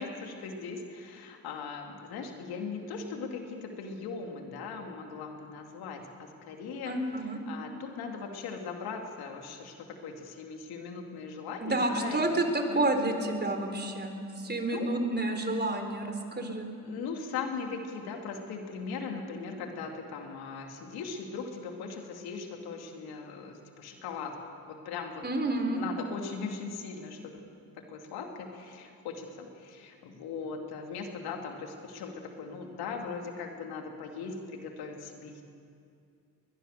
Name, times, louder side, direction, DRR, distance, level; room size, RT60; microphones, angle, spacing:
voice 1, 0.0-12.3 12.7-13.1 14.7-14.9 16.3-16.4 16.8-24.4 24.7-25.2 25.7-27.4 27.7-35.4, left 5 dB, 85° left, 3 dB, 2.9 m, -39 dB
voice 2, 6.9-7.4 11.6-14.1 14.4-16.7 25.2-25.8, right 2 dB, 25° right, 5 dB, 3.9 m, -29 dB
21.5 x 21.5 x 6.8 m, 2.4 s
supercardioid pair, 70°, 37 cm